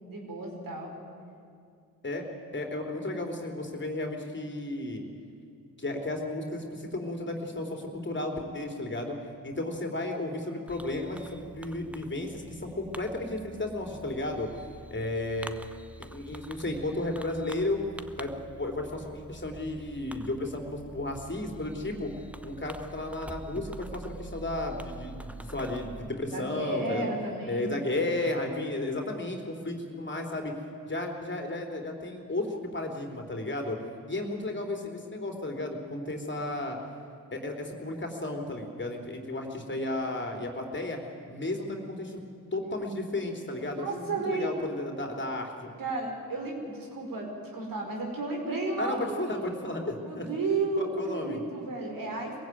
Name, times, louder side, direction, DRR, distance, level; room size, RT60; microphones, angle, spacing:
voice 1, 0.1-0.9 26.3-27.8 34.2-34.5 43.7-44.5 45.8-49.6 50.0-52.3, right 2 dB, 60° right, 1 dB, 5.1 m, -33 dB
voice 2, 2.5-5.0 5.8-9.2 9.4-14.5 14.9-15.5 16.0-17.8 18.2-22.1 22.4-27.1 27.5-30.5 30.9-33.8 34.1-36.8 37.3-41.0 41.3-42.2 42.5-45.7 48.8-50.3 50.8-51.4, left 2 dB, 30° left, 2 dB, 3.6 m, -33 dB
Fireworks, 10.7-26.1, right 1 dB, 5° right, 1.0 m, -46 dB
22.0 x 15.5 x 9.4 m, 2.3 s
supercardioid pair, 50°, 39 cm